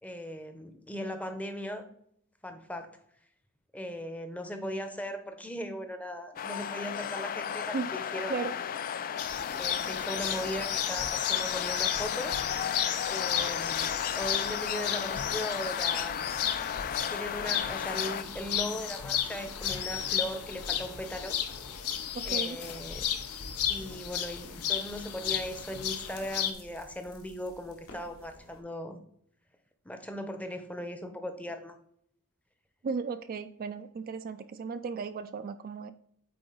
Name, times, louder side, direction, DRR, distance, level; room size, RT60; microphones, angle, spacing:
voice 1, 0.0-1.9 2.4-2.9 3.7-8.5 9.5-12.3 13.1-16.4 17.1-21.4 22.3-23.1 23.7-29.0 29.8-31.8, equal, 5° left, 7 dB, 0.7 m, -38 dB
sound 1, 6.4-18.2, left 8 dB, 40° left, 0.3 m, -34 dB
sound 2, 9.2-26.5, left 9 dB, 85° left, 0.7 m, -33 dB
sound 3, 15.8-28.6, left 1 dB, 65° left, 1.3 m, -53 dB
voice 2, 22.1-22.6 32.8-35.9, right 5 dB, 40° right, 10 dB, 0.3 m, -35 dB
8.5 x 3.8 x 3.8 m, 0.69 s
head